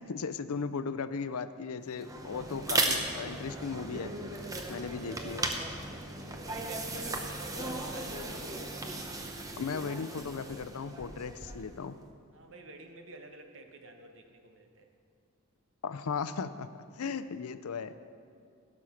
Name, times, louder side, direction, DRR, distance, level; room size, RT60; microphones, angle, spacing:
voice 1, 0.0-4.1 4.7-5.4 9.6-12.0 15.8-16.7 17.0-18.0, left 5 dB, 80° left, 13 dB, 0.5 m, -36 dB
sound 1, 1.9-11.7, right 2 dB, 15° right, 0.7 m, -36 dB
voice 2, 4.7-5.2 6.1-8.9 12.3-14.9, right 2 dB, 60° right, 5 dB, 1.1 m, -50 dB
17.0 x 6.3 x 5.8 m, 2.3 s
head